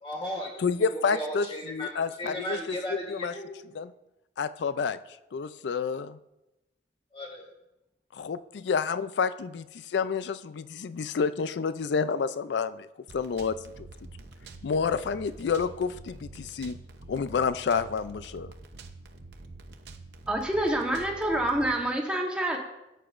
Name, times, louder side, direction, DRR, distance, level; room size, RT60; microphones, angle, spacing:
voice 1, 0.0-0.5 1.1-3.5 7.1-7.4, equal, 35° left, -1 dB, 1.9 m, -35 dB
voice 2, 0.6-2.6 3.1-3.3 3.8-3.9 4.4-5.0 5.3-6.2 8.1-12.9 13.1-13.9 14.6-16.8 17.1-18.5, left 5 dB, 80° left, 14 dB, 0.4 m, -29 dB
sound 1, 13.1-21.7, right 3 dB, 75° right, 0.7 m, -47 dB
voice 3, 20.3-22.6, right 1 dB, 5° right, 0 dB, 1.1 m, -27 dB
13.5 x 7.9 x 2.5 m, 0.94 s
head